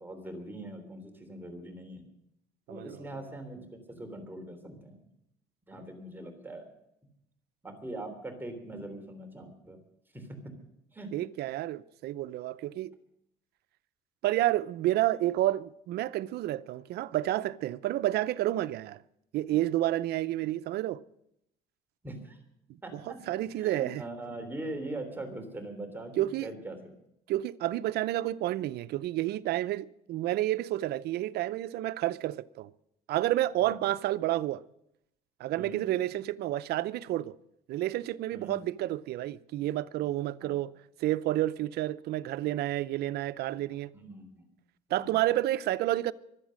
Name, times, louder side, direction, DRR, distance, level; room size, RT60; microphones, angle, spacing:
voice 1, 0.0-2.0 2.7-5.0 5.7-6.7 7.6-9.8 10.1-10.3 10.9-11.1 22.0-22.4 22.8-26.9 33.6-33.8 35.6-35.9 38.3-38.6 40.4-40.6 43.9-44.4 44.9-45.2, right 1 dB, 10° right, 3.4 m, -42 dB
voice 2, 2.7-3.0 11.1-12.9 14.2-19.0 19.3-21.0 22.9-23.0 23.3-24.0 26.2-26.5 27.3-32.7 33.1-34.6 35.4-37.3 37.7-40.7 41.0-43.9 44.9-46.1, right 15 dB, 70° right, 0.6 m, -30 dB
24.5 x 8.2 x 6.4 m
cardioid pair, 110°, 17 cm